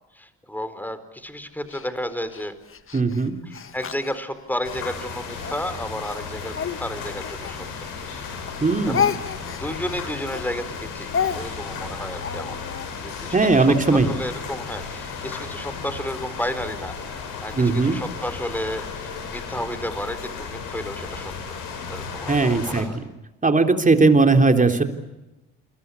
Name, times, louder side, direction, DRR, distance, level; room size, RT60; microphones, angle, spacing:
voice 1, 0.1-2.5 3.5-7.7 8.0-8.3 8.8-9.2 9.5-12.6 13.0-17.0 17.4-21.3 21.9-22.9, equal, 5° left, 12 dB, 4.3 m, -32 dB
Speech, 1.7-4.8 5.4-8.2 8.5-12.9, left 8 dB, 40° left, 1.7 m, -31 dB
voice 2, 2.9-3.3 8.6-9.0 13.3-14.1 17.5-18.0 22.3-22.9 23.4-24.8, right 3 dB, 25° right, 6 dB, 3.8 m, -18 dB
sound 1, 4.6-22.8, left 5 dB, 75° left, 7.3 m, -34 dB
28.0 x 22.5 x 8.5 m, 0.99 s
supercardioid pair, 65°, 33 cm